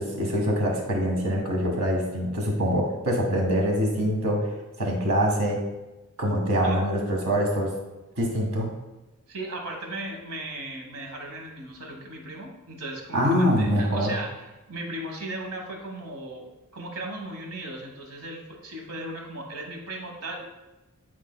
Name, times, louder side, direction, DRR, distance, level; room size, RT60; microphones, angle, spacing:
voice 1, 0.0-4.5 4.8-5.6 6.2-7.7 8.2-8.7 13.1-14.1, equal, 70° right, 0 dB, 1.5 m, -24 dB
voice 2, 9.3-16.5 16.7-20.5, right 1 dB, 90° right, 1 dB, 1.2 m, -37 dB
10.0 x 4.5 x 2.2 m, 1.1 s
head